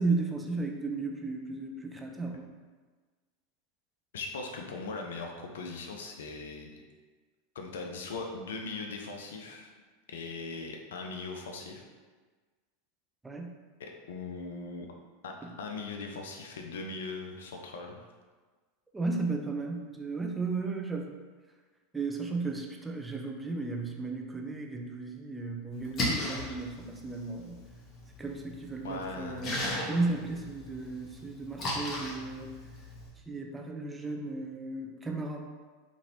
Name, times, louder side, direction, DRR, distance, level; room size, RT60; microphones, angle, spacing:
voice 1, 0.0-2.5 13.2-13.5 15.4-15.5 18.9-21.2 21.9-27.6 28.2-32.5 33.3-35.4, right 3 dB, 10° right, 1 dB, 0.4 m, -34 dB
voice 2, 4.1-6.8 7.6-9.7 10.1-11.8 13.8-14.9 15.2-18.0 28.8-29.8, left 3 dB, 70° left, 2 dB, 0.4 m, -40 dB
Splash splatter, 25.7-33.1, left 1 dB, 35° left, 0.8 m, -37 dB
2.9 x 2.6 x 2.7 m, 1.4 s
figure-of-eight pair, 85°, 0 cm